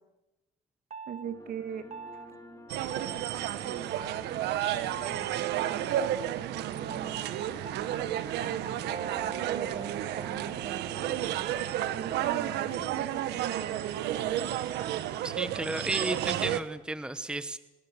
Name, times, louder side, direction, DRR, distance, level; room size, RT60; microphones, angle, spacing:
sound 1, 0.9-1.3 1.9-2.3 2.9-3.3 3.9-4.2 4.9-5.3 5.9-6.3 6.9-12.0, right 6 dB, 45° right, 1.5 m, -42 dB
voice 1, 1.1-1.8 2.1-2.3 3.6-3.9 4.3-7.4 8.2-11.1 11.9-14.6, right 8 dB, 65° right, 9 dB, 2.4 m, -41 dB
sound 2, 1.2-16.4, left 3 dB, 15° left, 4.8 m, -51 dB
sound 3, 2.7-16.6, right 12 dB, 85° right, 1.4 m, -32 dB
voice 2, 15.2-17.6, right 2 dB, 5° right, 12 dB, 1.1 m, -33 dB
26.0 x 21.5 x 7.2 m, 1.0 s
cardioid pair, 110°, 17 cm